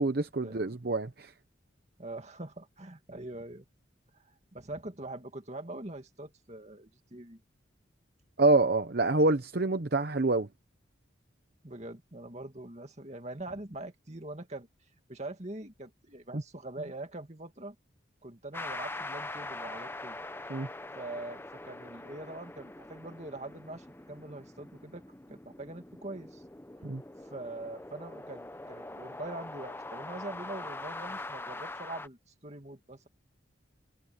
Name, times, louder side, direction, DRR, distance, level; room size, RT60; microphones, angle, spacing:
voice 1, 0.0-1.3 8.4-10.5 16.3-16.4 20.5-20.7 26.8-27.0, right 2 dB, 50° right, 0.9 m, -26 dB
voice 2, 2.0-3.6 4.1-7.4 11.6-14.7 15.1-17.8 18.2-20.2 20.9-25.0 25.3-26.4 27.2-33.1, right 2 dB, 35° right, 2.3 m, -43 dB
sound 1, 18.5-32.1, left 2 dB, 10° left, 0.8 m, -43 dB
head